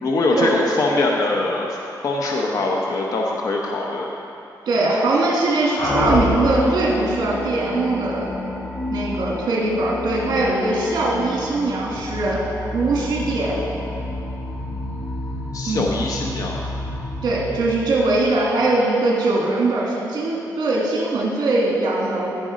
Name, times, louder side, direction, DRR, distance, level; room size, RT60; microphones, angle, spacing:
voice 1, 0.0-1.7 2.0-4.1 15.5-16.6, left 2 dB, 55° left, -1 dB, 0.8 m, -22 dB
voice 2, 4.7-8.3 8.9-12.4 12.7-13.7 15.7-15.9 17.2-22.4, right 2 dB, 75° right, -4 dB, 1.9 m, -21 dB
sound 1, 5.8-18.6, left 1 dB, 80° left, 2.6 m, -28 dB
15.5 x 5.2 x 5.0 m, 2.7 s
wide cardioid pair, 170°, 7 cm